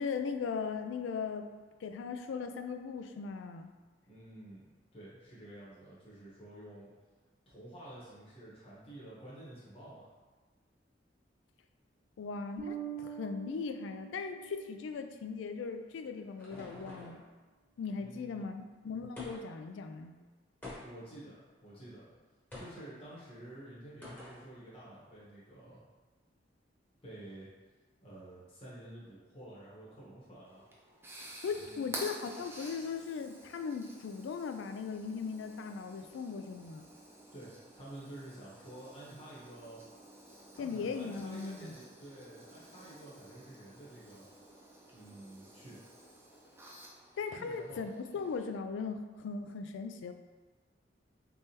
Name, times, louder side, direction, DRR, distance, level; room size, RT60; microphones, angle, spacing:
voice 1, 0.0-1.5 1.8-3.7 12.2-17.2 17.8-20.2 31.2-36.9 40.6-41.8 47.2-50.1, left 5 dB, 80° left, 7 dB, 0.3 m, -38 dB
voice 2, 4.1-4.6 4.9-6.9 7.5-10.1 18.0-18.5 20.8-22.1 22.5-25.8 27.0-27.5 28.0-30.6 31.6-31.9 37.3-39.8 40.5-44.3 44.9-45.8 47.3-47.8, right 1 dB, 30° left, -8 dB, 1.1 m, -50 dB
Bass guitar, 12.6-15.2, right 9 dB, 60° right, 1.3 m, -44 dB
sound 1, 15.7-17.3 19.2-19.6 20.6-21.2 22.5-22.9 24.0-24.5, left 1 dB, 10° left, 0.9 m, -48 dB
sound 2, 30.5-48.4, right 1 dB, 15° right, 0.5 m, -51 dB
3.5 x 3.3 x 2.8 m, 1.3 s
head